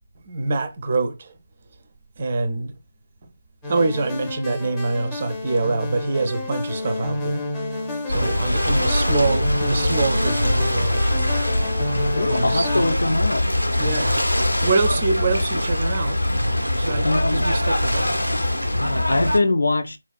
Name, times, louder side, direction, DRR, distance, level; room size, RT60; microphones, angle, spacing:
voice 1, 0.3-1.3 2.2-2.7 3.7-7.4 8.1-11.0 12.2-12.7 13.7-14.3 14.6-16.2 16.7-18.3, right 3 dB, 30° right, 0.4 m, -25 dB
sound 1, 3.6-13.0, left 2 dB, 5° left, 0.7 m, -30 dB
Ocean / Boat Water vehicle, 8.1-19.4, left 1 dB, 90° left, 0.8 m, -22 dB
voice 2, 12.1-13.4 17.0-17.5 18.6-20.0, left 2 dB, 60° left, 0.5 m, -22 dB
4.0 x 2.3 x 2.3 m
figure-of-eight pair, 160°, 0 cm